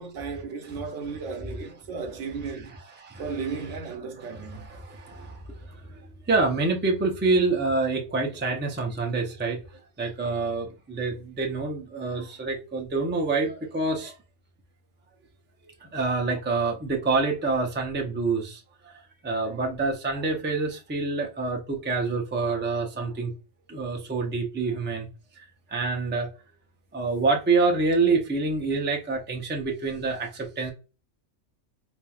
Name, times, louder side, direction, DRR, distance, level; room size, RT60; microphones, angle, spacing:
voice 1, 0.0-2.7 3.2-4.7 8.8-8.9, right 5 dB, 80° right, 1.1 m, -35 dB
voice 2, 2.7-3.7 4.2-6.0 6.3-9.6 10.0-14.2 15.8-23.3 23.7-25.1 25.4-26.3 26.9-30.7, right 3 dB, 15° right, 0.5 m, -27 dB
4.1 x 3.3 x 2.3 m
omnidirectional pair, 1.3 m